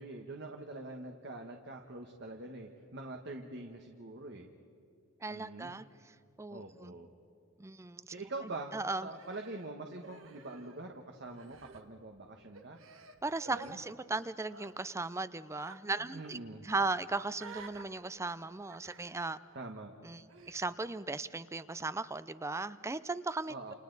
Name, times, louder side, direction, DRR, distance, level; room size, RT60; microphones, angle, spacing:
voice 1, 0.0-4.5 5.3-5.8 6.5-7.1 8.1-8.7 9.0-12.8 13.5-13.8 16.1-16.6 19.5-20.0 23.5-23.7, right 2 dB, 60° right, 3 dB, 1.3 m, -44 dB
voice 2, 5.2-7.0 7.6-8.1 8.7-9.1 13.2-19.4 20.0-23.7, right 3 dB, 15° right, 15 dB, 0.5 m, -37 dB
Human voice, 9.1-11.0 11.2-11.8 12.5-13.7 14.4-14.7 15.6-15.8 16.1-16.3 17.3-17.8 18.7-19.2 20.3-20.6, right 4 dB, 80° right, 1.4 m, -52 dB
29.5 x 28.5 x 4.0 m, 2.5 s
head